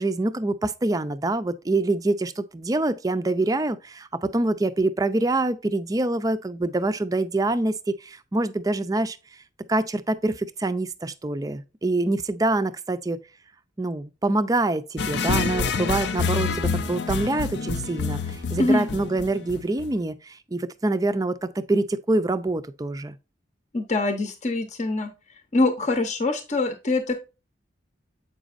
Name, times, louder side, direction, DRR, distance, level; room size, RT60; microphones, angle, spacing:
voice 1, 0.0-9.2 9.7-13.2 13.8-23.2, right 2 dB, 20° right, 0.4 m, -25 dB
sound 1, 15.0-20.0, left 4 dB, 75° left, 0.5 m, -27 dB
voice 2, 18.6-18.9 23.7-25.1 25.5-27.1, left 2 dB, 40° left, 0.8 m, -24 dB
7.9 x 5.1 x 2.5 m
head